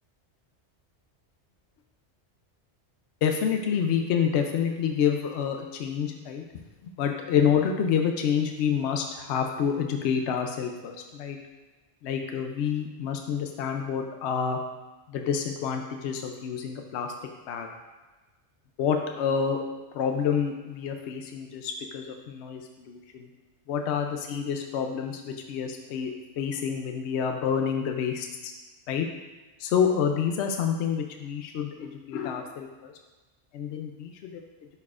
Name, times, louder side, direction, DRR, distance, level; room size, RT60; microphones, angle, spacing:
voice 1, 3.2-6.4 7.0-11.4 12.0-14.6 15.1-17.1 17.5-17.7 18.8-19.6 19.9-22.6 22.9-23.3 23.7-28.5 28.9-29.0 29.6-32.9 33.5-34.4, left 7 dB, 75° left, 4 dB, 0.8 m, -28 dB
11.0 x 4.4 x 2.4 m, 1.2 s
omnidirectional pair, 1.2 m